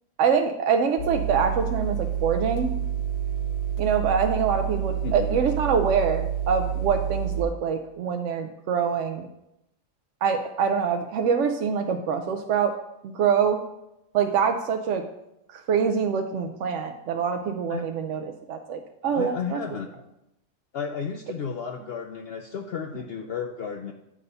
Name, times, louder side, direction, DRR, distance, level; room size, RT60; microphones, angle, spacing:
voice 1, 0.2-2.8 3.8-9.3 10.2-12.7 13.0-13.6 14.1-15.0 15.5-19.6, right 6 dB, 70° right, 5 dB, 0.9 m, -25 dB
sound 1, 1.0-7.4, right 10 dB, 90° left, 1.4 m, -28 dB
voice 2, 5.0-5.4 17.7-17.9 19.1-19.9 20.7-23.9, left 6 dB, 65° left, 4 dB, 0.6 m, -33 dB
8.7 x 4.1 x 5.4 m, 0.86 s
omnidirectional pair, 1.4 m